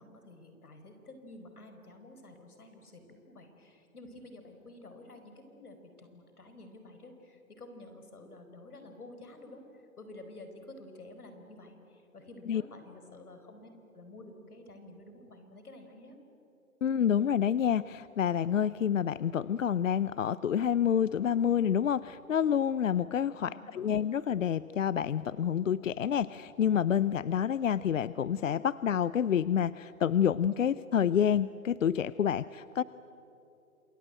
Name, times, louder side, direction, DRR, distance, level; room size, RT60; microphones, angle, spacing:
voice 1, 0.0-16.2 23.3-24.0, left 2 dB, 90° left, 7 dB, 4.9 m, -50 dB
voice 2, 16.8-32.8, left 8 dB, 60° left, 17 dB, 0.6 m, -28 dB
27.5 x 22.0 x 9.1 m, 3.0 s
hypercardioid pair, 160°, 43 cm